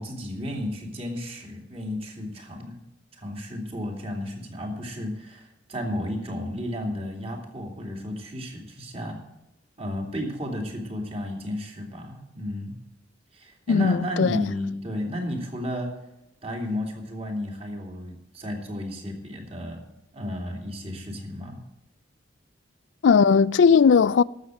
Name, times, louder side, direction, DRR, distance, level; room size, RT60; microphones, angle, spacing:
voice 1, 0.0-2.8 3.1-9.2 9.8-12.8 13.3-15.9 16.4-19.9 20.1-21.6, left 1 dB, 35° right, 2.7 m, -33 dB
voice 2, 13.7-14.5 23.0-24.2, left 5 dB, 85° left, 0.4 m, -18 dB
12.5 x 7.3 x 7.8 m
head